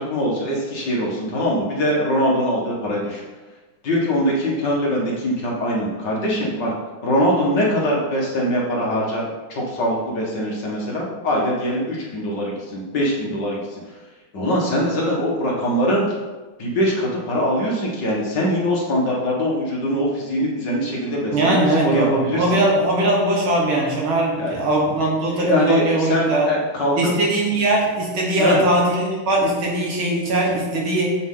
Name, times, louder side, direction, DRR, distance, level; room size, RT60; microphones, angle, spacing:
voice 1, 0.0-3.2 3.8-6.7 7.0-9.2 9.5-13.6 14.3-16.0 16.6-21.6 21.8-22.4 24.4-24.6 25.4-27.1 28.4-28.6, equal, 55° left, -3 dB, 2.1 m, -22 dB
voice 2, 21.3-26.5 27.0-31.2, right 1 dB, 70° right, -2 dB, 2.3 m, -20 dB
7.3 x 6.9 x 3.8 m, 1.2 s
omnidirectional pair, 2.3 m